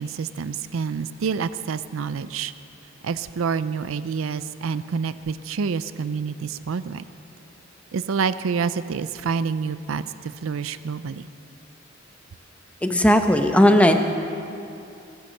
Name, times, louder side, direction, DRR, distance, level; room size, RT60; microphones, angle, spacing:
voice 1, 0.0-2.5 3.0-7.0 7.9-11.3, right 5 dB, 85° right, 14 dB, 0.4 m, -28 dB
voice 2, 12.8-13.9, left 1 dB, 5° left, 6 dB, 0.7 m, -16 dB
16.0 x 10.5 x 6.5 m, 2.7 s
head